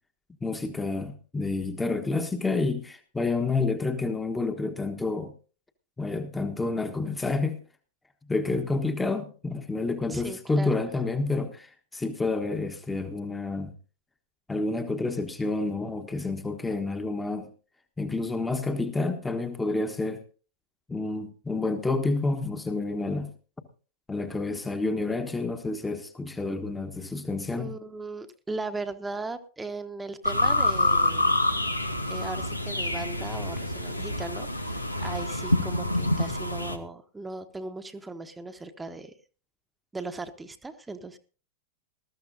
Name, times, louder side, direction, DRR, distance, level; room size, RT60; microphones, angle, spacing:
voice 1, 0.4-5.3 6.0-7.6 8.3-13.7 14.5-17.5 18.0-20.2 20.9-23.3 24.1-27.7, left 3 dB, 10° left, 7 dB, 1.3 m, -29 dB
voice 2, 10.1-10.8 27.6-31.3 32.1-39.1 39.9-41.2, right 3 dB, 10° right, 9 dB, 1.1 m, -38 dB
sound 1, 30.2-36.8, left 1 dB, 85° left, 1.1 m, -27 dB
20.0 x 13.5 x 2.7 m, 0.38 s
figure-of-eight pair, 90°, 0 cm